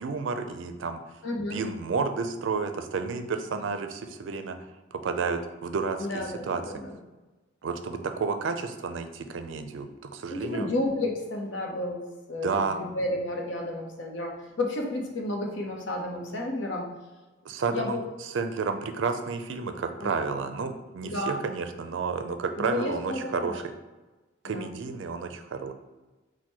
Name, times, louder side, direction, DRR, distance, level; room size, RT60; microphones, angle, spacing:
voice 1, 0.0-4.6 4.9-6.0 6.4-6.6 7.6-10.7 12.4-12.8 17.5-23.6 24.4-25.7, right 5 dB, 80° right, 7 dB, 0.4 m, -31 dB
voice 2, 1.2-1.6 6.0-7.0 10.3-14.3 14.6-16.9 17.7-18.0 20.0-20.1 21.0-21.4 22.6-23.6 24.4-24.7, left 1 dB, 75° left, 1 dB, 0.7 m, -32 dB
4.4 x 2.2 x 4.5 m, 1.2 s
head